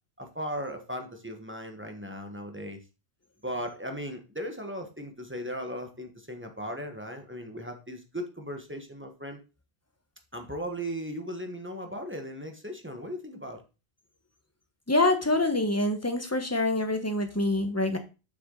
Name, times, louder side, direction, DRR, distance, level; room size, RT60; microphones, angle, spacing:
voice 1, 0.2-2.8 3.4-9.4 10.3-13.6, equal, 10° right, 4 dB, 1.3 m, -37 dB
voice 2, 14.9-18.0, left 2 dB, 15° left, 6 dB, 1.1 m, -25 dB
7.1 x 6.2 x 3.9 m, 0.30 s
omnidirectional pair, 1.1 m